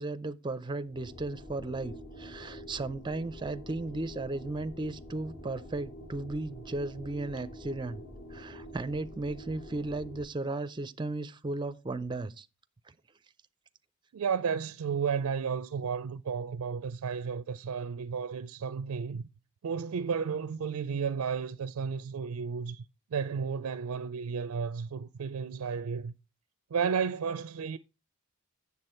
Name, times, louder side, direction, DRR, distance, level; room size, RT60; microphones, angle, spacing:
voice 1, 0.0-8.0 8.3-12.5, right 2 dB, 20° right, 0.5 m, -35 dB
sound 1, 0.8-10.2, equal, 50° left, 3.3 m, -46 dB
voice 2, 14.1-19.2 19.6-22.8 23.1-26.1 26.7-27.8, right 6 dB, 75° right, 0.4 m, -33 dB
8.1 x 7.0 x 4.3 m
head